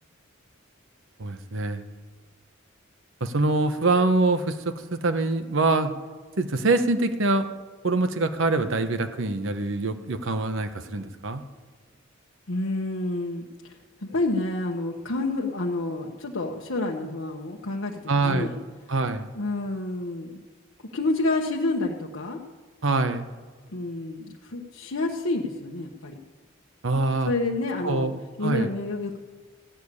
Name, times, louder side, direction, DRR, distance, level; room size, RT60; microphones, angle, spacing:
voice 1, 1.2-1.8 3.2-5.9 6.4-7.5 7.8-11.4 18.1-18.5 18.9-19.3 22.8-23.3 26.8-27.3 27.8-28.7, right 2 dB, 70° right, 8 dB, 1.0 m, -24 dB
voice 2, 12.5-18.6 19.3-20.4 20.9-22.4 23.7-26.2 27.2-28.1 28.4-29.2, left 2 dB, 75° left, -1 dB, 1.1 m, -29 dB
15.0 x 6.8 x 9.7 m, 1.4 s
head